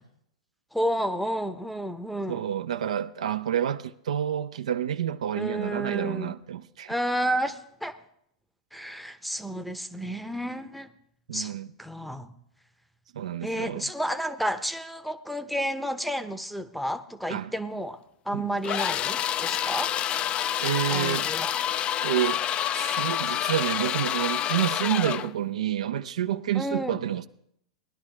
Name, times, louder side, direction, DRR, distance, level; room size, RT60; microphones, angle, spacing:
voice 1, 0.7-2.4 5.3-6.3 6.9-7.9 8.7-10.9 11.3-11.5 11.8-12.3 13.4-18.0 18.2-19.9 20.9-21.6 26.5-27.0, equal, ahead, 0.7 m, -31 dB
voice 2, 2.3-6.9 11.3-11.7 13.1-13.9 17.3-17.5 18.3-18.5 20.6-21.3 22.0-22.4 22.7-27.3, right 10 dB, 65° right, 0.5 m, -29 dB
sound 1, 18.6-25.3, left 10 dB, 30° left, 0.4 m, -28 dB
18.5 x 11.0 x 3.3 m
figure-of-eight pair, 95°, 4 cm